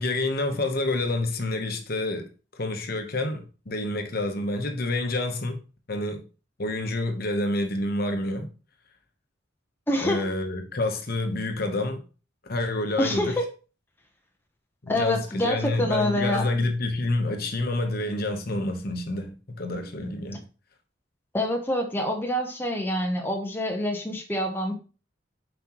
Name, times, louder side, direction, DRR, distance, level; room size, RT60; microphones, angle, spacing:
voice 1, 0.0-5.6 5.9-6.2 6.6-8.5 10.0-12.0 12.5-13.3 14.8-20.4, left 2 dB, 50° left, 1.0 m, -28 dB
voice 2, 9.9-10.2 13.0-13.4 14.9-16.5 21.3-24.7, left 1 dB, 10° left, 0.8 m, -26 dB
7.4 x 5.2 x 3.0 m
head